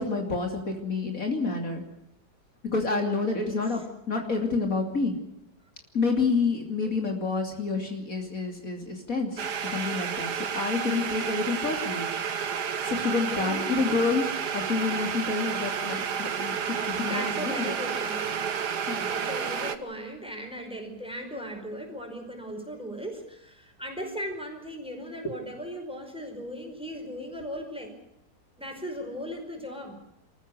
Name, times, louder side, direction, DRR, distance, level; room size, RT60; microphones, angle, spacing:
voice 1, 0.0-1.8 2.7-3.8 4.1-5.1 5.9-9.3 9.6-12.1 12.8-14.2 14.5-17.7 18.9-19.1, left 4 dB, 55° left, 2 dB, 3.3 m, -28 dB
voice 2, 3.4-3.8 6.8-6.9 13.3-13.7 17.0-18.5 19.0-27.9 28.6-30.0, equal, 5° right, 3 dB, 5.1 m, -38 dB
sound 1, 9.4-19.8, right 7 dB, 85° right, 1.9 m, -31 dB
26.5 x 15.0 x 8.1 m, 0.82 s
omnidirectional pair, 1.7 m